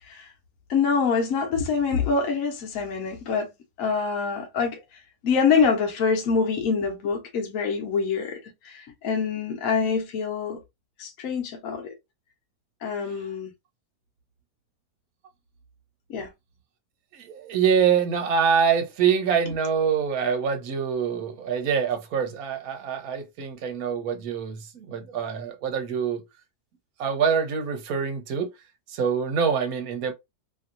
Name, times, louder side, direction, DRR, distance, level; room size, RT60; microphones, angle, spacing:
voice 1, 0.7-3.5 3.8-4.8 5.2-10.6 11.0-11.9 12.8-13.5 16.1-16.3, left 5 dB, 60° left, 1.1 m, -25 dB
voice 2, 17.1-26.2 27.0-28.5 28.9-30.1, right 7 dB, 65° right, 1.2 m, -25 dB
2.9 x 2.7 x 2.6 m
omnidirectional pair, 1.7 m